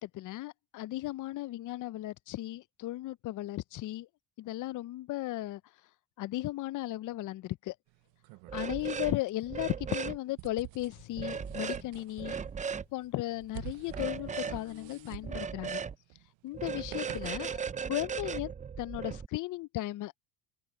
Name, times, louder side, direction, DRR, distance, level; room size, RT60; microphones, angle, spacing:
voice 1, 0.0-4.1 4.4-5.6 6.2-7.7 8.5-12.4 12.9-15.8 16.4-17.6 17.9-18.5 18.8-20.1, left 16 dB, 45° left, 0.5 m, -36 dB
sound 1, 7.9-17.5, right 22 dB, 80° right, 0.8 m, -51 dB
sound 2, 8.5-9.2 9.5-10.2 11.2-11.8 12.2-12.9 13.9-14.6 15.2-16.0 16.5-19.3, right 6 dB, 15° right, 0.4 m, -37 dB
sound 3, 10.9-15.9, left 18 dB, 60° left, 0.9 m, -55 dB
cardioid pair, 105°, 45 cm